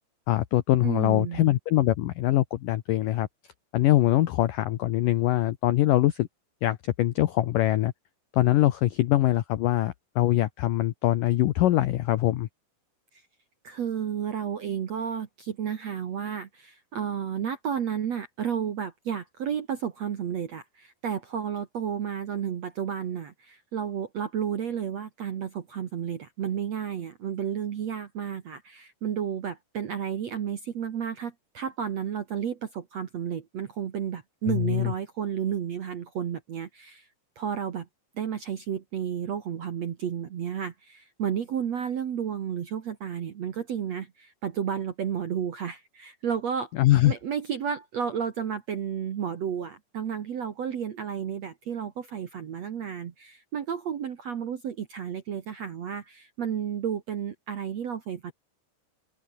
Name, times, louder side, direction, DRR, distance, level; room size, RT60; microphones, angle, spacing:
voice 1, 0.3-3.3 3.7-6.3 6.6-7.9 8.3-12.5 34.5-34.9 46.7-47.1, left 14 dB, 80° left, 1.9 m, -23 dB
voice 2, 0.8-1.5 13.1-13.2 13.6-37.1 37.3-37.9 38.1-46.7 47.0-58.3, right 8 dB, 60° right, 1.8 m, -32 dB
open air
omnidirectional pair, 5.2 m